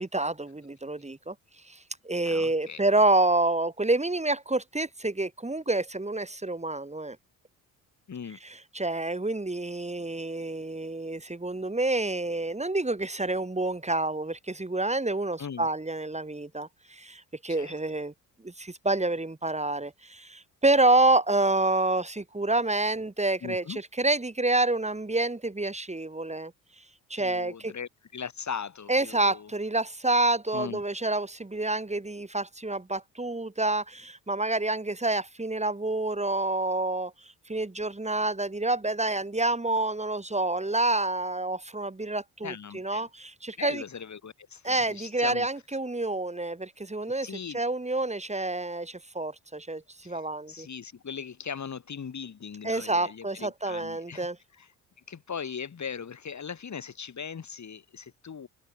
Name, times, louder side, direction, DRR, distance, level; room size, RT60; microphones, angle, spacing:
voice 1, 0.1-1.3 1.7-1.8 2.0-7.2 8.7-18.1 18.4-26.5 27.1-27.7 28.9-37.1 37.5-43.8 44.6-50.7 52.6-54.4, right 2 dB, 15° right, 6.2 m, -28 dB
voice 2, 2.2-2.8 8.1-8.4 15.4-15.7 17.5-17.7 23.4-23.8 27.2-29.5 30.5-30.8 42.4-43.1 43.6-45.5 47.2-47.6 50.0-54.3 54.5-54.7 55.1-58.5, left 6 dB, 40° left, 6.1 m, -39 dB
figure-of-eight pair, 45°, 42 cm